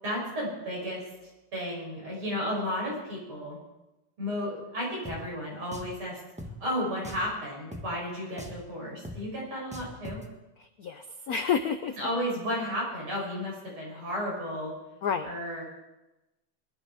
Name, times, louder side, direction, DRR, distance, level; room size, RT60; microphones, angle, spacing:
voice 1, 0.0-1.0 1.5-3.6 4.2-6.2 6.6-10.2 12.0-14.7 15.2-15.6, equal, 75° right, -4 dB, 7.4 m, -33 dB
Drum, 5.0-5.2 5.7-6.0 6.4-6.5 7.0-7.3 7.7-7.9 8.4-8.6 9.0-9.2 9.7-10.2, left 1 dB, 5° right, 1.0 m, -40 dB
voice 2, 10.6-11.9 15.0-15.3, left 7 dB, 75° left, 9 dB, 0.8 m, -29 dB
20.5 x 11.5 x 4.9 m, 0.99 s
omnidirectional pair, 2.4 m